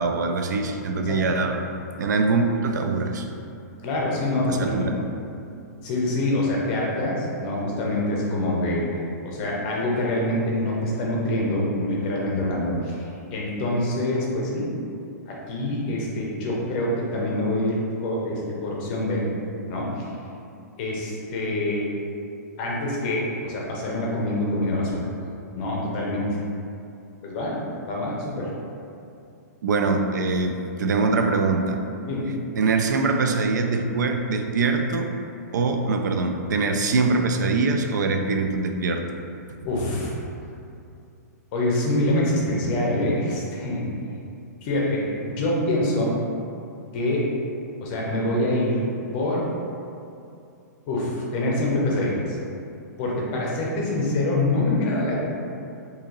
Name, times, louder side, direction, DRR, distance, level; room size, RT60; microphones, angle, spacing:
voice 1, 0.0-1.7 2.0-3.3 4.5-4.9 29.6-31.8 32.5-35.1 35.5-39.1, right 3 dB, 85° right, 5 dB, 0.4 m, -23 dB
voice 2, 3.8-4.9 5.8-8.9 9.2-13.0 13.3-14.7 15.3-19.3 19.7-20.1 20.8-21.9 22.6-25.0 25.6-26.3 27.2-27.6 27.9-28.5 32.0-32.3 39.6-40.1 41.5-43.8 44.6-46.2 46.9-47.3 47.8-48.9 49.1-49.4 50.9-52.4 53.0-55.1, left 1 dB, 30° left, -3 dB, 0.7 m, -25 dB
2.8 x 2.7 x 3.8 m, 2.6 s
hypercardioid pair, 165°, 9 cm